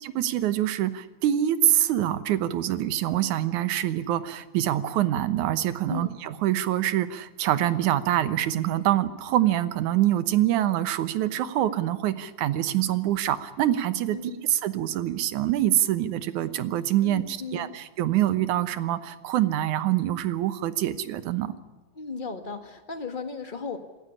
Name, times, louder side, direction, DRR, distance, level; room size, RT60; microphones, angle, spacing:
voice 1, 0.0-21.5, right 12 dB, 85° right, 13 dB, 2.5 m, -25 dB
voice 2, 14.1-14.5 17.0-17.8 21.9-23.8, left 4 dB, 25° left, 7 dB, 1.1 m, -36 dB
27.0 x 15.5 x 10.0 m, 1.3 s
omnidirectional pair, 3.4 m